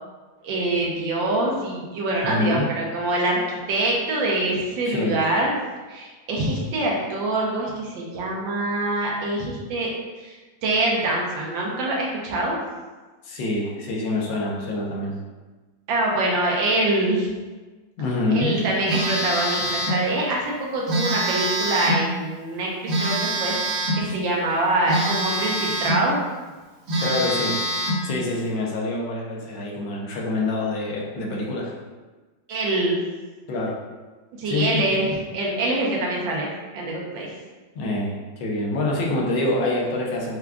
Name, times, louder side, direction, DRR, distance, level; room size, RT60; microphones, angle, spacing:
voice 1, 0.4-5.5 5.9-9.9 10.2-10.4 10.6-12.6 15.9-17.3 18.3-26.2 32.5-33.0 34.4-36.5 36.7-37.3, right 2 dB, 80° right, -3 dB, 1.5 m, -24 dB
voice 2, 2.2-2.7 4.8-5.2 13.2-15.2 18.0-18.6 23.9-24.2 27.0-27.6 28.0-31.7 33.5-33.8 34.4-34.8 37.7-40.4, left 2 dB, 80° left, -2 dB, 1.5 m, -26 dB
Telephone, 18.9-20.0 20.9-22.1 22.9-24.1 24.9-26.1 26.5-26.6 26.9-28.1, right 1 dB, 45° right, 1.2 m, -25 dB
4.9 x 2.3 x 3.5 m, 1.3 s
omnidirectional pair, 2.0 m